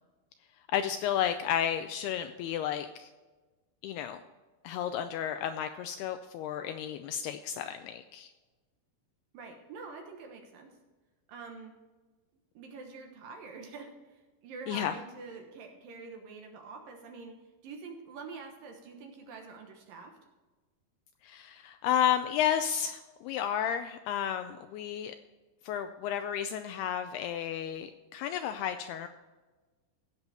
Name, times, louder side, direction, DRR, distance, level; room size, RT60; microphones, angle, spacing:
voice 1, 0.7-3.1 3.8-4.2 4.6-8.3 14.7-14.9 21.2-25.2 25.6-29.1, left 9 dB, 80° left, 8 dB, 2.3 m, -32 dB
voice 2, 9.3-10.8 11.3-11.7 12.5-17.4 17.6-20.2, right 4 dB, 65° right, 3 dB, 2.5 m, -46 dB
16.0 x 7.0 x 4.2 m, 1.2 s
omnidirectional pair, 4.9 m